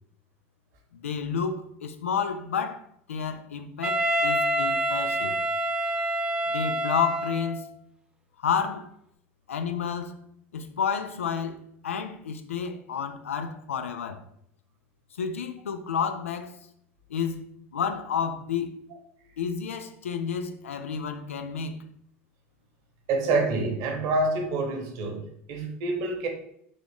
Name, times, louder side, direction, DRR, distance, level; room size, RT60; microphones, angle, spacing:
voice 1, 0.9-5.4 6.5-7.7 8.4-8.9 9.5-10.2 10.5-14.2 15.2-16.6 17.1-17.5 17.7-18.8 19.4-21.8, left 7 dB, 90° left, 0.3 m, -30 dB
Wind instrument woodwind instrument, 3.8-7.7, right 1 dB, 10° right, 0.5 m, -27 dB
voice 2, 23.1-26.3, right 3 dB, 60° right, 1.0 m, -27 dB
3.7 x 2.4 x 3.5 m
hypercardioid pair, 80°, 7 cm